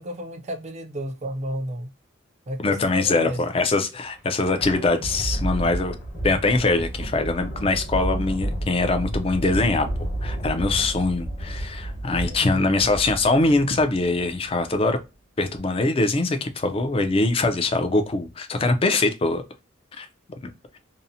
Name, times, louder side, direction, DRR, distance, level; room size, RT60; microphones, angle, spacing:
voice 1, 0.0-1.9 2.5-3.4 12.2-12.7, equal, 35° right, 0.4 m, -32 dB
voice 2, 2.6-5.9 6.2-15.0 15.4-19.4 20.0-20.1, left 3 dB, 30° left, 0.4 m, -23 dB
Thunder, 4.2-14.8, right 1 dB, 50° left, 1.0 m, -31 dB
2.7 x 2.0 x 2.5 m
head